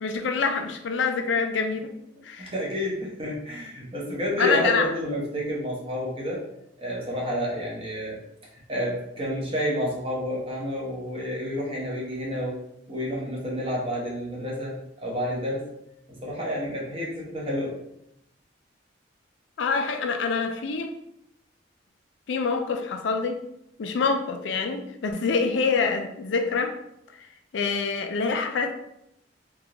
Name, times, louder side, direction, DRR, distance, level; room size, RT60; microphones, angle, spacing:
voice 1, 0.0-1.9 2.2-2.5 4.4-4.9 19.6-20.9 22.3-23.4 23.8-26.7 27.5-28.7, left 5 dB, 75° left, 6 dB, 0.4 m, -26 dB
voice 2, 2.4-6.4 6.8-8.2 8.7-12.6 12.9-15.7 16.1-17.8, equal, 30° right, -4 dB, 1.0 m, -29 dB
3.5 x 2.4 x 2.9 m, 0.79 s
head